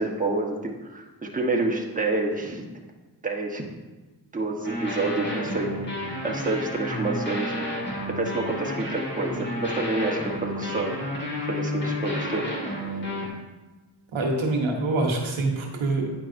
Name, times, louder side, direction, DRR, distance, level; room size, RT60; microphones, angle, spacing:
voice 1, 0.0-2.6 3.2-3.6 4.3-7.7 8.1-11.0 11.5-12.5, right 2 dB, 15° right, 0 dB, 1.0 m, -28 dB
sound 1, 4.6-13.3, left 1 dB, 25° left, 1.8 m, -31 dB
voice 2, 14.1-16.1, right 2 dB, 85° right, 1 dB, 1.0 m, -25 dB
9.1 x 4.7 x 2.6 m, 1.2 s
cardioid pair, 40°, 46 cm